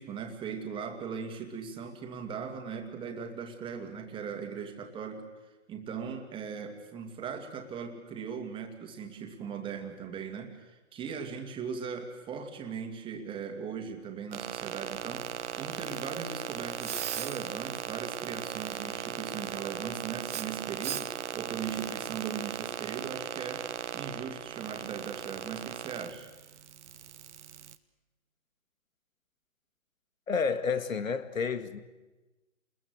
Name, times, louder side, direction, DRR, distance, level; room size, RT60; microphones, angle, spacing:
voice 1, 0.0-23.7 23.9-26.3, right 6 dB, 10° right, 4 dB, 2.4 m, -39 dB
sound 1, 14.3-27.8, right 9 dB, 60° right, 1.3 m, -38 dB
voice 2, 30.3-31.8, left 5 dB, 75° left, 11 dB, 2.2 m, -30 dB
30.0 x 21.5 x 8.0 m, 1.1 s
hypercardioid pair, 145°, 40 cm